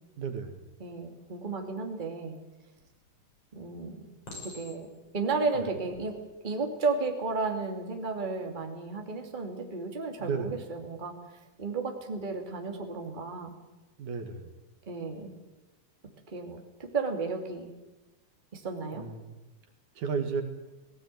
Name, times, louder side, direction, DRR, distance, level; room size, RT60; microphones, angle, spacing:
voice 1, 0.2-0.6 5.5-5.7 10.2-10.5 14.0-14.5 18.9-19.4 20.0-20.4, right 5 dB, 65° right, 6 dB, 3.1 m, -33 dB
voice 2, 0.8-2.4 3.5-4.0 4.4-4.9 5.1-6.2 6.4-11.1 11.6-13.5 14.9-15.3 16.3-17.7 18.5-19.1, right 4 dB, 15° right, 3 dB, 2.4 m, -33 dB
Chink clink, 2.8-3.3 4.3-5.1 5.8-6.1, left 2 dB, 45° left, 7.0 m, -45 dB
18.0 x 18.0 x 9.3 m, 1.1 s
omnidirectional pair, 3.8 m